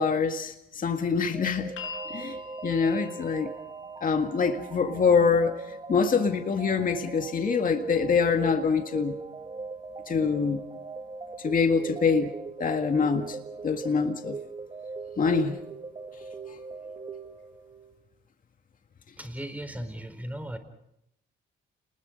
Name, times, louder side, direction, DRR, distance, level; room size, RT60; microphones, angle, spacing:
voice 1, 0.0-1.7 2.1-3.5 4.0-9.2 10.1-10.6 11.4-12.3 12.6-13.4 13.6-14.4 15.2-15.6, left 5 dB, 45° left, 1.9 m, -25 dB
sound 1, 1.3-17.9, right 4 dB, 25° right, 1.6 m, -40 dB
sound 2, 1.8-13.8 14.9-15.0, left 2 dB, 75° left, 5.9 m, -48 dB
voice 2, 19.2-20.6, right 1 dB, 5° right, 4.3 m, -36 dB
29.5 x 20.5 x 5.3 m
cardioid pair, 90°, 20 cm